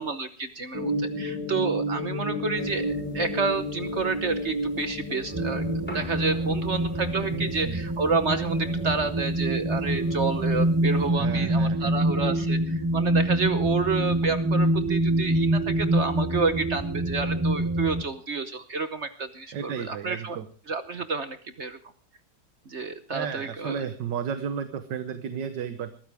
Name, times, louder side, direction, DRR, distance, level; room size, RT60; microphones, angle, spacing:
voice 1, 0.0-2.9 3.1-5.6 5.9-20.4 20.7-21.8 22.7-23.8, right 4 dB, 45° right, 10 dB, 1.1 m, -29 dB
sound 1, 0.7-5.9, equal, 80° left, 3.3 m, -31 dB
sound 2, 2.5-11.1, left 2 dB, 5° left, 4.5 m, -46 dB
sound 3, 5.3-18.0, right 1 dB, 15° right, 0.9 m, -25 dB
voice 2, 7.3-7.8 11.1-12.1 19.5-20.5 23.1-25.9, right 7 dB, 80° right, 9 dB, 1.7 m, -33 dB
21.0 x 14.5 x 3.5 m, 0.41 s
omnidirectional pair, 1.9 m